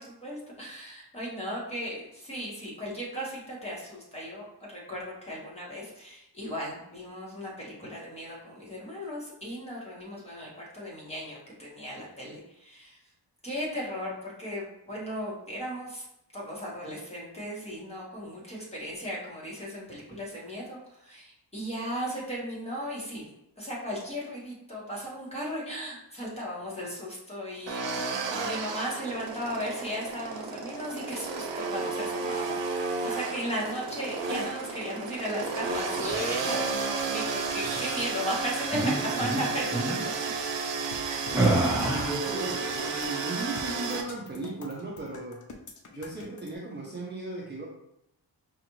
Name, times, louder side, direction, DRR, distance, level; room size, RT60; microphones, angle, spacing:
voice 1, 0.0-13.0 13.4-16.0 16.3-23.3 23.6-40.0 41.0-41.3, equal, 15° left, -5 dB, 1.2 m, -36 dB
sound 1, 27.7-44.0, right 4 dB, 80° right, 0.7 m, -32 dB
sound 2, 35.7-36.6 37.5-38.1 38.7-38.9 39.2-39.4 39.7-40.0 41.3-42.2, right 1 dB, 5° right, 0.8 m, -28 dB
sound 3, 40.9-46.5, left 3 dB, 45° left, 0.5 m, -46 dB
voice 2, 41.3-45.4 45.9-47.7, right 2 dB, 25° right, -4 dB, 0.5 m, -36 dB
5.0 x 2.4 x 3.0 m, 0.80 s
wide cardioid pair, 160°, 43 cm